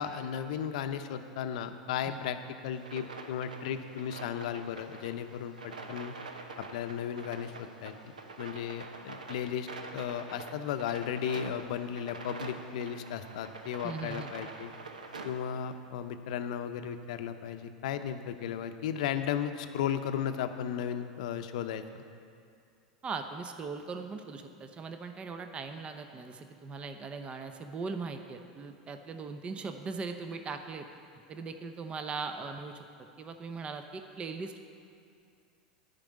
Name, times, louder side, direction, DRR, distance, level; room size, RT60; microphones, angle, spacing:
voice 1, 0.0-2.4 2.6-6.1 6.6-14.7 15.2-22.0, left 8 dB, 65° left, 9 dB, 0.6 m, -35 dB
sound 1, 2.7-15.5, right 3 dB, 85° right, 0.8 m, -46 dB
voice 2, 13.8-14.3 23.0-30.9 31.3-32.9 33.2-34.7, right 4 dB, 25° right, 7 dB, 0.7 m, -39 dB
10.5 x 5.3 x 8.4 m, 2.4 s
hypercardioid pair, 90°, 4 cm